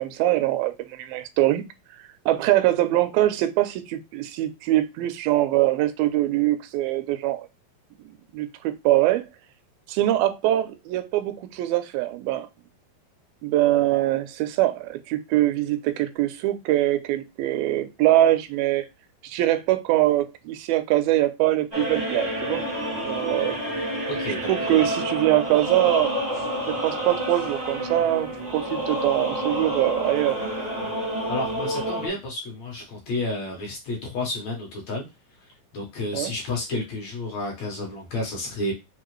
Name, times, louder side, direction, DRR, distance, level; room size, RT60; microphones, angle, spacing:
voice 1, 0.0-1.7 2.3-7.5 8.0-9.2 9.9-12.5 13.4-18.9 19.2-22.6 23.0-23.6 24.3-26.2 26.8-30.4 36.1-36.3, right 14 dB, 90° right, 10 dB, 2.4 m, -23 dB
sound 1, 21.7-32.1, equal, 40° right, 0.5 m, -29 dB
voice 2, 24.2-24.9 31.3-35.0 35.7-38.7, left 2 dB, 65° left, -1 dB, 1.9 m, -31 dB
5.8 x 2.3 x 3.0 m, 0.23 s
omnidirectional pair, 4.1 m